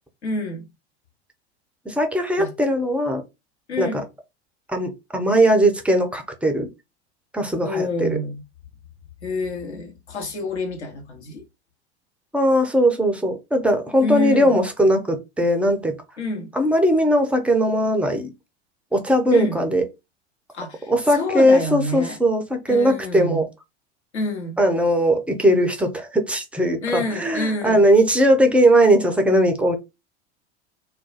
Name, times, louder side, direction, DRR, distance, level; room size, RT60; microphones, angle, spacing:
voice 1, 0.2-0.6 2.4-2.5 3.7-4.0 7.6-8.4 9.2-11.4 14.0-14.6 16.2-16.5 19.3-19.6 20.5-22.2 22.7-23.4 24.1-24.6 26.8-27.8, left 1 dB, 75° left, 1.1 m, -28 dB
voice 2, 1.9-3.2 3.8-4.0 4.7-6.7 7.3-8.1 12.3-16.0 16.5-18.3 18.9-19.8 20.9-23.5 24.6-29.8, equal, 5° right, 0.4 m, -19 dB
2.4 x 2.2 x 3.9 m
figure-of-eight pair, 80°, 34 cm